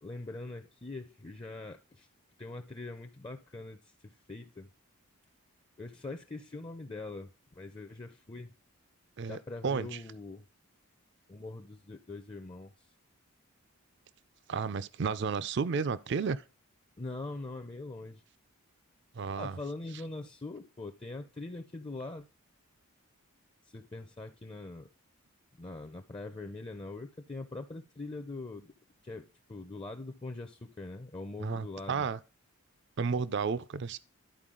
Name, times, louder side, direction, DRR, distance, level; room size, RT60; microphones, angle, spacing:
voice 1, 0.0-2.1 2.4-4.7 5.8-7.3 7.6-8.5 9.3-10.4 11.3-12.9 17.0-18.2 19.4-22.3 23.6-24.9 25.5-28.7 29.0-32.1, left 2 dB, 20° left, 0.5 m, -43 dB
voice 2, 9.2-10.0 14.5-16.4 19.1-19.6 31.4-32.2 33.0-34.0, right 5 dB, 50° right, 0.4 m, -32 dB
11.5 x 4.5 x 3.7 m
head